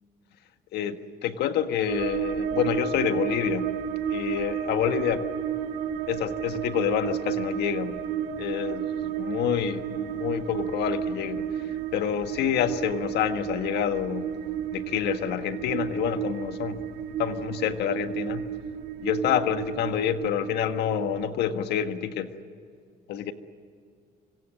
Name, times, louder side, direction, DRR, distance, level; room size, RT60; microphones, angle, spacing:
voice 1, 0.7-3.8 4.1-5.3 6.1-8.0 8.4-11.5 11.9-14.3 14.7-16.8 17.2-18.4 19.0-22.3 23.1-23.3, left 9 dB, 80° left, 8 dB, 1.6 m, -28 dB
sound 1, 1.9-21.3, right 9 dB, 80° right, 2.8 m, -32 dB
25.5 x 25.5 x 6.5 m, 2.3 s
cardioid pair, 110°, 17 cm